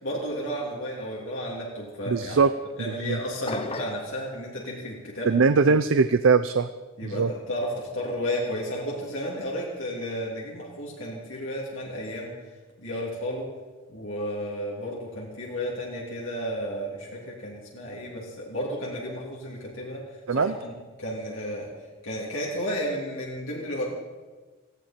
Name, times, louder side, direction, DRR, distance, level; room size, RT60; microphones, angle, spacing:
voice 1, 0.0-2.4 2.8-5.4 7.0-12.3 12.8-13.5 13.9-20.0 20.3-21.7 22.0-23.8, equal, 75° left, -4 dB, 3.2 m, -32 dB
voice 2, 2.1-2.5 2.8-3.2 5.3-6.7 7.0-7.3 20.3-20.5, right 4 dB, 75° right, 11 dB, 0.5 m, -21 dB
sound 1, 3.5-4.1, left 3 dB, 30° left, 0.7 m, -33 dB
18.5 x 16.0 x 4.5 m, 1.3 s
head